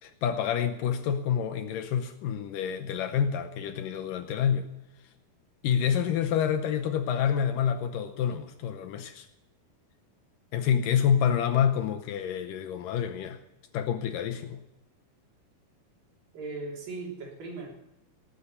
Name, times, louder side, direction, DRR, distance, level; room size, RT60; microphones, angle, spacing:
voice 1, 0.0-4.7 5.6-9.3 10.5-13.4 13.7-14.6, left 8 dB, 75° left, 7 dB, 2.3 m, -28 dB
voice 2, 16.3-17.7, right 3 dB, 65° right, -1 dB, 5.2 m, -38 dB
18.5 x 8.1 x 8.3 m, 0.91 s
omnidirectional pair, 4.4 m